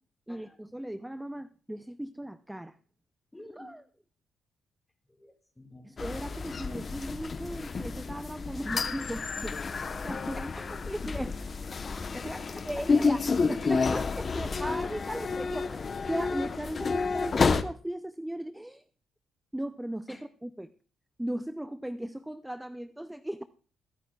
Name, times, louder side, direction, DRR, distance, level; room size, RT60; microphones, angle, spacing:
voice 1, 0.3-2.8 3.5-3.8 5.8-9.6 10.0-10.5 10.8-11.4 12.2-12.4 12.7-13.2 13.5-18.8 19.5-20.7 21.2-23.4, right 1 dB, 5° right, 12 dB, 0.5 m, -37 dB
voice 2, 3.3-3.7 5.1-5.9 10.0-10.1 10.3-11.2 12.1-12.5 12.8-13.1 20.1-20.2, left 1 dB, 10° left, 5 dB, 2.3 m, -47 dB
sound 1, 6.0-17.6, left 4 dB, 40° left, 0.9 m, -30 dB
22.0 x 10.5 x 2.4 m, 0.42 s
cardioid pair, 90°, 0 cm